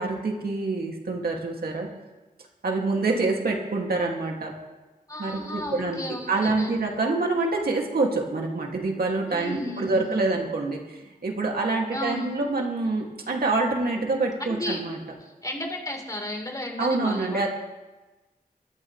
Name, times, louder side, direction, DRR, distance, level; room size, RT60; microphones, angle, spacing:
voice 1, 0.0-1.9 2.6-4.5 5.2-6.0 6.3-15.0 16.8-17.5, right 3 dB, 80° right, 0 dB, 2.4 m, -26 dB
voice 2, 5.1-6.8 9.3-10.1 11.9-12.3 14.5-14.8 15.2-17.5, left 1 dB, 20° left, 1 dB, 3.8 m, -33 dB
22.0 x 13.0 x 3.3 m, 1.2 s
cardioid pair, 55°, 16 cm